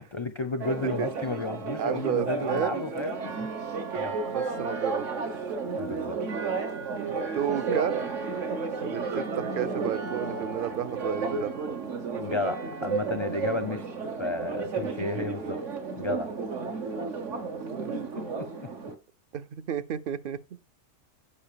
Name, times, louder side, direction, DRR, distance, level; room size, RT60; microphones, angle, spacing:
voice 1, 0.0-3.5 3.9-4.2 5.8-6.2 12.2-13.9 14.2-15.6 16.0-16.3 17.9-18.7, left 3 dB, 35° left, 0.5 m, -33 dB
Church bell, 0.6-18.9, right 4 dB, 75° right, 1.6 m, -32 dB
voice 2, 1.8-2.8 4.2-5.1 7.0-8.0 8.7-11.7 15.2-15.3 16.1-16.2 17.7-17.9 19.3-20.4, right 10 dB, 55° right, 0.7 m, -32 dB
8.6 x 5.4 x 6.8 m
omnidirectional pair, 1.3 m